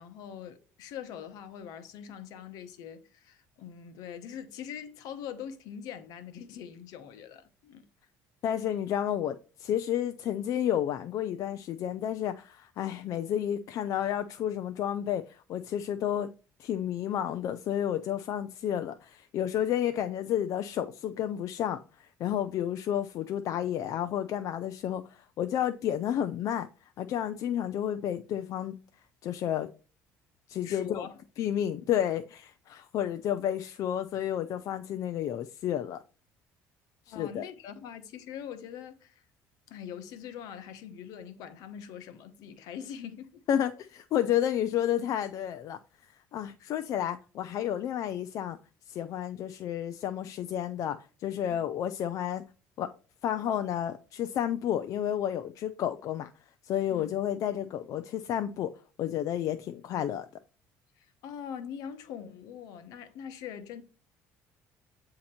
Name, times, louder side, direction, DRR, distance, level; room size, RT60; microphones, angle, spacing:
voice 1, 0.0-7.9 30.6-31.2 31.8-31.9 37.1-39.2 39.7-43.4 56.9-57.1 61.0-63.8, left 8 dB, 75° left, 0.9 m, -43 dB
voice 2, 8.4-16.3 16.6-26.7 27.0-28.7 29.2-29.7 30.5-31.1 31.4-36.0 37.1-37.4 43.5-45.8 46.3-48.6 48.9-52.4 52.8-52.9 53.2-56.3 56.6-58.7 59.0-60.3, left 10 dB, 60° left, 0.4 m, -31 dB
8.5 x 2.9 x 4.2 m
supercardioid pair, 95°, 6 cm